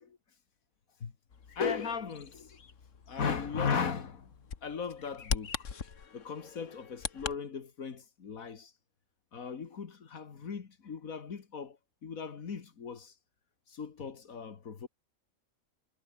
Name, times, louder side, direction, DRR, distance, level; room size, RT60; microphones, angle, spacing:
Bird vocalization bird call bird song, 1.3-7.4, left 6 dB, 65° left, 1.9 m, -41 dB
voice 1, 1.6-2.6 3.1-4.4 4.6-5.7 6.1-8.7 9.3-13.1 13.7-14.9, left 6 dB, 85° left, 2.2 m, -37 dB
omnidirectional pair, 1.4 m